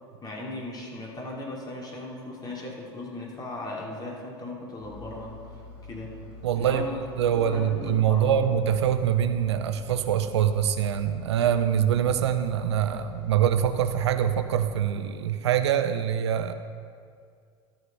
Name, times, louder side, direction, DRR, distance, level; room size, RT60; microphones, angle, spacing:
voice 1, 0.2-5.4 5.8-6.1 6.5-6.9 7.3-8.5, left 2 dB, 30° left, -2 dB, 2.9 m, -37 dB
Engine, 4.8-14.5, left 3 dB, 90° left, 2.9 m, -46 dB
voice 2, 6.4-6.9 7.2-16.5, right 9 dB, 90° right, 9 dB, 0.6 m, -24 dB
13.0 x 6.7 x 5.5 m, 2.2 s
hypercardioid pair, 85°, 14 cm